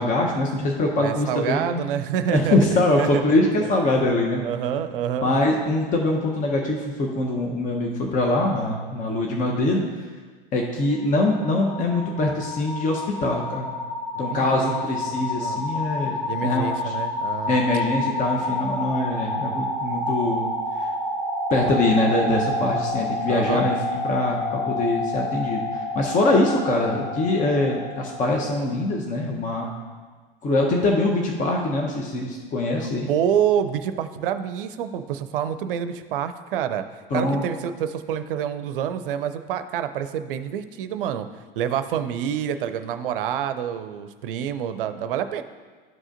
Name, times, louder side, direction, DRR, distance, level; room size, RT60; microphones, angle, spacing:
voice 1, 0.0-1.8 2.3-4.4 5.2-9.8 10.5-13.8 14.2-16.9 17.5-20.5 20.8-20.9 21.5-29.7 30.4-33.1 37.1-37.4, left 2 dB, 25° left, 1 dB, 0.9 m, -23 dB
voice 2, 1.0-3.2 3.6-3.7 4.4-5.3 14.3-14.7 15.1-15.6 16.3-17.6 23.3-23.7 32.7-36.8 37.1-41.3 41.6-45.4, right 9 dB, 65° right, 11 dB, 0.6 m, -27 dB
sound 1, 11.0-28.8, left 2 dB, 80° left, 2.2 m, -29 dB
12.0 x 4.9 x 2.6 m, 1.4 s
figure-of-eight pair, 85°, 29 cm